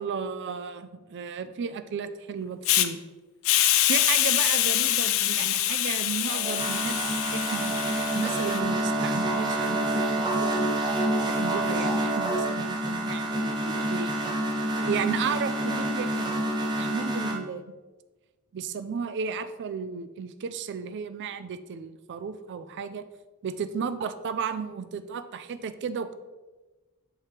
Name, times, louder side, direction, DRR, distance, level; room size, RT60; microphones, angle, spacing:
voice 1, 0.0-3.0 3.9-7.8 8.1-9.9 10.2-10.8 11.3-14.1 14.7-16.5 16.8-17.7 18.5-23.0 23.4-26.1, right 6 dB, 55° right, 12 dB, 0.3 m, -34 dB
Hiss, 2.7-2.9 3.4-8.6, left 13 dB, 60° left, 0.4 m, -25 dB
sound 1, 6.3-17.4, right 1 dB, 20° right, 0.7 m, -27 dB
6.7 x 4.4 x 3.2 m, 1.2 s
head